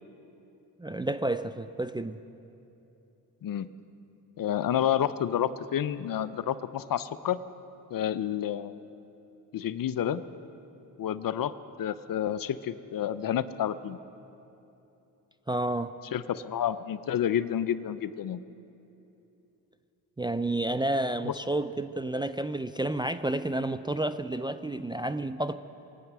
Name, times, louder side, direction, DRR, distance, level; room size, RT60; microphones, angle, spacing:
voice 1, 0.8-2.2 15.5-15.9 20.2-25.5, right 1 dB, 10° right, 11 dB, 0.4 m, -30 dB
voice 2, 4.4-7.4 7.9-8.8 9.5-10.2 11.0-11.5 11.8-14.0 16.1-18.4 21.2-21.4, left 10 dB, 50° left, 14 dB, 0.7 m, -29 dB
22.0 x 9.2 x 6.1 m, 3.0 s
supercardioid pair, 60°, 43 cm